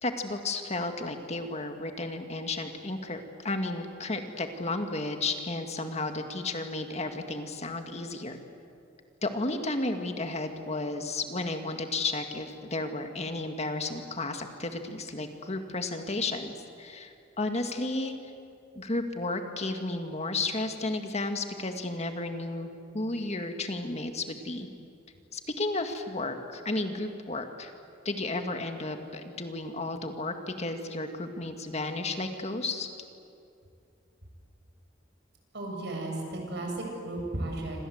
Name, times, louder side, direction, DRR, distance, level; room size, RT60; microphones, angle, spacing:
voice 1, 0.0-8.4 9.2-16.5 16.8-18.1 18.8-22.7 22.9-24.7 25.3-27.7 28.1-32.9, left 2 dB, 35° left, 6 dB, 1.9 m, -33 dB
voice 2, 35.5-37.9, right 2 dB, 65° right, 1 dB, 7.5 m, -34 dB
27.5 x 27.0 x 8.0 m, 2.5 s
head